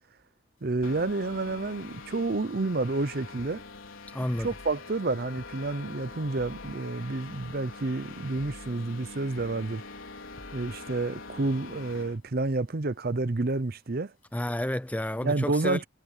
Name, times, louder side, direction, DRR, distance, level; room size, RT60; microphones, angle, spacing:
voice 1, 0.6-3.6 4.4-9.8 10.5-14.1 15.2-15.8, right 3 dB, 45° right, 0.7 m, -29 dB
sound 1, 0.8-12.2, left 3 dB, 80° left, 4.2 m, -44 dB
voice 2, 4.1-4.5 14.3-15.8, left 1 dB, 5° left, 0.5 m, -30 dB
sound 2, 4.4-4.8 5.4-5.6 6.4-6.8 7.4-7.6 8.4-8.8 9.4-9.6 10.4-10.8, left 1 dB, 40° left, 1.7 m, -49 dB
head